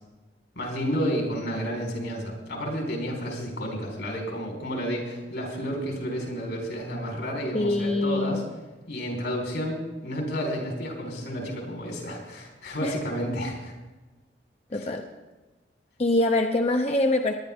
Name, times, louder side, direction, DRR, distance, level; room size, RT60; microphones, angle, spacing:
voice 1, 0.5-8.4 8.9-13.7 14.7-14.9, equal, 85° left, 0 dB, 4.3 m, -31 dB
voice 2, 7.5-8.4 12.8-13.0 14.7-15.0 16.0-17.3, left 2 dB, 35° left, 3 dB, 0.7 m, -24 dB
19.0 x 11.0 x 3.6 m, 1.2 s
head